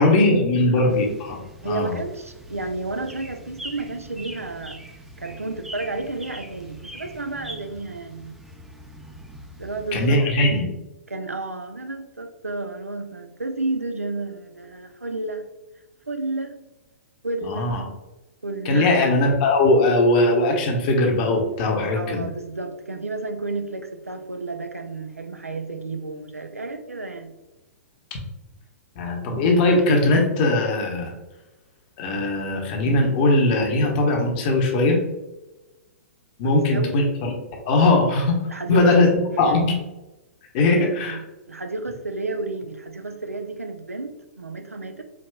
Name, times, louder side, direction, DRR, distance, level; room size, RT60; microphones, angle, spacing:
voice 1, 0.0-1.4 1.6-1.9 9.9-10.6 17.4-17.8 18.6-22.2 29.0-31.1 32.0-35.0 36.4-37.3 37.6-38.4 38.7-39.1 39.4-39.7 40.5-41.2, left 2 dB, 40° left, 1 dB, 0.9 m, -19 dB
sound 1, 0.9-10.2, right 1 dB, 5° right, 0.5 m, -42 dB
voice 2, 1.6-4.8 5.2-8.4 9.6-10.6 11.1-15.5 16.1-16.6 17.2-17.7 18.4-18.9 21.9-27.3 36.4-37.1 38.5-38.9 39.3-39.6 40.6-41.2 41.5-45.0, right 2 dB, 85° right, 7 dB, 0.4 m, -31 dB
4.8 x 2.9 x 2.2 m, 1.0 s
figure-of-eight pair, 110°, 8 cm